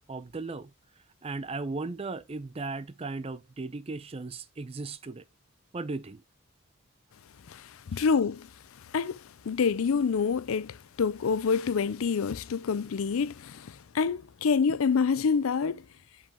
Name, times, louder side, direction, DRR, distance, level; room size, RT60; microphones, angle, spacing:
voice 1, 0.1-0.7 1.2-5.2 5.7-6.2 7.9-8.0, right 3 dB, 25° right, 0.5 m, -36 dB
voice 2, 7.9-8.5 8.9-9.2 9.5-13.6 13.9-15.8, left 5 dB, 70° left, 0.4 m, -26 dB
7.4 x 5.3 x 2.9 m
head